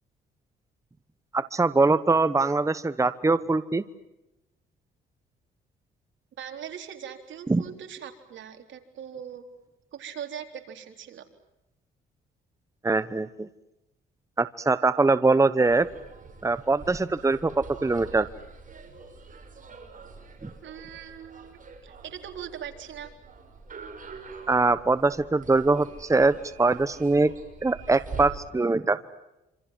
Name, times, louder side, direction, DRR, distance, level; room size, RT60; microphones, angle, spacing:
voice 1, 1.3-3.8 7.5-7.6 12.8-13.5 14.4-15.9 16.4-18.3 20.4-20.5 24.5-27.3 27.6-29.0, right 3 dB, 15° right, 14 dB, 1.0 m, -23 dB
voice 2, 6.4-9.4 9.9-11.2 20.6-23.1, right 9 dB, 70° right, 5 dB, 3.9 m, -40 dB
sound 1, 15.6-28.3, right 4 dB, 40° right, 6.2 m, -45 dB
27.5 x 26.5 x 7.7 m, 0.91 s
cardioid pair, 90°, 20 cm